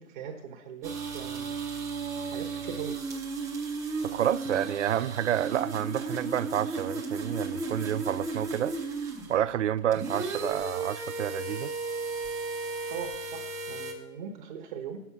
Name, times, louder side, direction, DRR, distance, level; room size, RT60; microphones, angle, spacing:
voice 1, 0.0-1.5 2.2-3.0 12.9-15.0, right 7 dB, 35° right, 1.1 m, -40 dB
sound 1, 0.8-9.4 9.8-13.9, right 3 dB, 5° right, 0.8 m, -35 dB
voice 2, 4.0-8.8 9.3-11.7, right 10 dB, 60° right, 0.5 m, -29 dB
9.4 x 7.1 x 6.0 m
hypercardioid pair, 140°, 42 cm